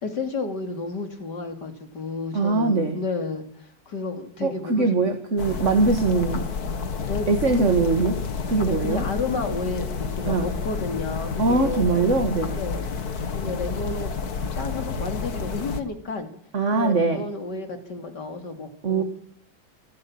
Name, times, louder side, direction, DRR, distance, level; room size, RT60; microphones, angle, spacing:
voice 1, 0.0-5.0 7.1-7.3 7.7-7.8 8.6-11.9 12.5-12.9 13.3-14.1 14.5-16.3 16.7-19.0, left 3 dB, 90° left, 6 dB, 3.6 m, -31 dB
voice 2, 2.3-3.0 4.4-6.5 7.3-8.2 8.5-9.0 10.3-10.5 11.4-12.5 16.5-17.2 18.8-19.0, right 3 dB, 45° right, 6 dB, 2.4 m, -22 dB
sound 1, 5.4-15.8, left 5 dB, 65° left, 2.2 m, -30 dB
27.5 x 12.0 x 8.8 m, 0.64 s
omnidirectional pair, 1.8 m